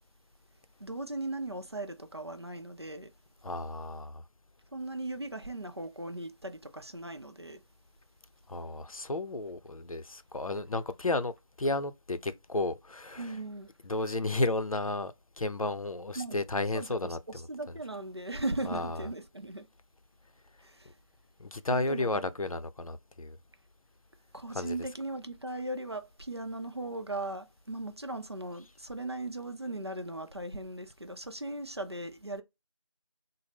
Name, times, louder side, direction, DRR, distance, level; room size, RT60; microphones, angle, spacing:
voice 1, 0.8-3.1 4.7-7.6 13.2-13.7 16.2-16.4 16.7-19.7 20.6-20.9 21.7-22.2 24.3-32.4, right 2 dB, 50° right, 0.5 m, -38 dB
voice 2, 3.4-4.2 8.5-13.4 13.8-17.8 18.6-19.1 21.4-23.4 24.5-24.8, left 2 dB, 90° left, 0.5 m, -33 dB
4.0 x 2.0 x 3.3 m
figure-of-eight pair, 175°, 17 cm